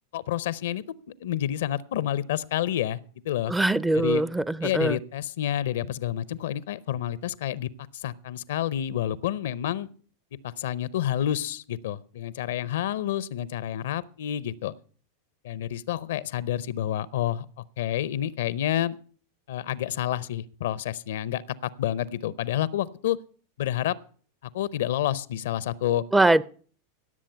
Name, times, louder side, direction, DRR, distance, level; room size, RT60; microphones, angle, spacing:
voice 1, 0.1-0.8 1.2-3.0 3.2-3.5 3.9-4.2 4.6-9.9 10.4-14.7 15.4-19.0 19.5-23.2 23.6-24.0 24.5-26.0, left 11 dB, 70° left, 21 dB, 0.6 m, -29 dB
voice 2, 3.5-5.0 26.1-26.4, right 2 dB, 10° right, 20 dB, 0.5 m, -22 dB
17.0 x 7.4 x 5.7 m, 0.43 s
hypercardioid pair, 95°, 0 cm